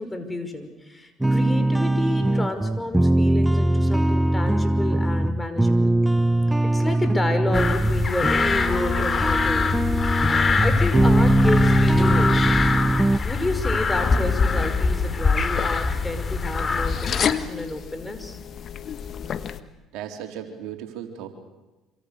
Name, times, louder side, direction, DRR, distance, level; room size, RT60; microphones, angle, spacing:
voice 1, 0.0-5.9 6.6-9.7 10.6-12.4 13.2-18.4, left 1 dB, 15° left, 7 dB, 5.5 m, -30 dB
sound 1, 1.2-13.2, right 1 dB, 10° right, 0.8 m, -21 dB
sound 2, 7.5-17.3, left 4 dB, 35° left, 2.7 m, -23 dB
sound 3, 13.9-19.6, left 8 dB, 50° left, 1.7 m, -31 dB
voice 2, 19.9-21.3, right 9 dB, 75° right, 4 dB, 3.9 m, -36 dB
27.0 x 26.0 x 6.8 m, 1.1 s
hypercardioid pair, 70°, 0 cm